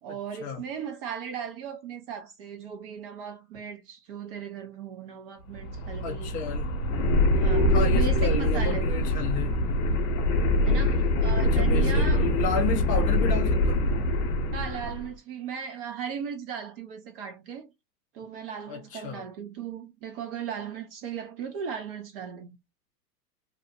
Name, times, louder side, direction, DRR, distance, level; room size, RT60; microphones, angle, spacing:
voice 1, 0.0-6.4 7.3-8.9 10.6-12.3 14.5-17.7 18.1-22.6, right 7 dB, 40° right, 0.5 m, -37 dB
sound 1, 5.5-15.1, left 1 dB, 55° left, 0.8 m, -24 dB
voice 2, 6.0-6.7 7.7-9.6 11.4-13.8 18.7-19.2, left 6 dB, 20° left, 0.4 m, -32 dB
2.7 x 2.0 x 2.5 m
hypercardioid pair, 110°, 48 cm